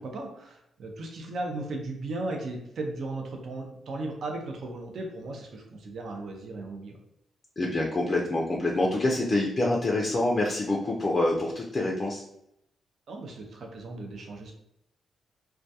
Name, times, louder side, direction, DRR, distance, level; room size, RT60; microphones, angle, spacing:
voice 1, 0.0-6.9 13.1-14.5, right 2 dB, 65° right, 2 dB, 0.5 m, -36 dB
voice 2, 7.6-12.2, left 2 dB, 35° left, -2 dB, 0.4 m, -26 dB
2.2 x 2.2 x 2.7 m, 0.79 s
cardioid pair, 80°, 0 cm